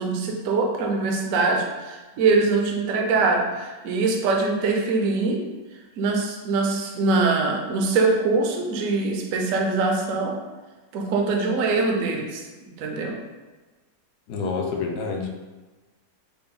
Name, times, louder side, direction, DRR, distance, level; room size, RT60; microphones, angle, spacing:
voice 1, 0.0-5.4 6.0-10.4 10.9-13.2, right 3 dB, 65° right, 1 dB, 0.8 m, -23 dB
voice 2, 14.3-15.3, left 4 dB, 75° left, 2 dB, 1.1 m, -27 dB
4.2 x 2.1 x 3.7 m, 1.2 s
omnidirectional pair, 1.8 m